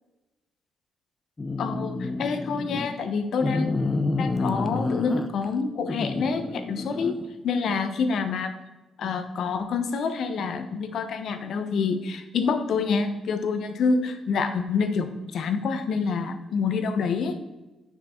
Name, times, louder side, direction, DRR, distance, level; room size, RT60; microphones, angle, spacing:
sound 1, 1.4-2.9 3.4-5.5 5.9-7.3, left 3 dB, 15° left, 0.5 m, -29 dB
voice 1, 1.6-3.8 4.2-7.1 7.4-8.5 9.0-17.4, left 5 dB, 55° left, 8 dB, 0.8 m, -27 dB
9.5 x 6.0 x 4.3 m, 1.1 s
cardioid pair, 175°, 0 cm